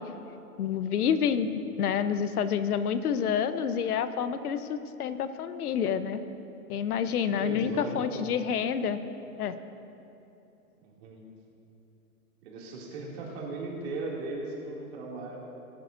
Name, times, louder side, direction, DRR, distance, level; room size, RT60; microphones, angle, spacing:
voice 1, 0.6-6.2 6.7-9.0 9.4-9.5, left 7 dB, 75° left, 11 dB, 0.9 m, -28 dB
voice 2, 7.2-8.2 10.8-11.2 12.4-15.4, right 2 dB, 45° right, -3 dB, 2.5 m, -37 dB
20.0 x 10.5 x 2.6 m, 2.9 s
hypercardioid pair, 145°, 45 cm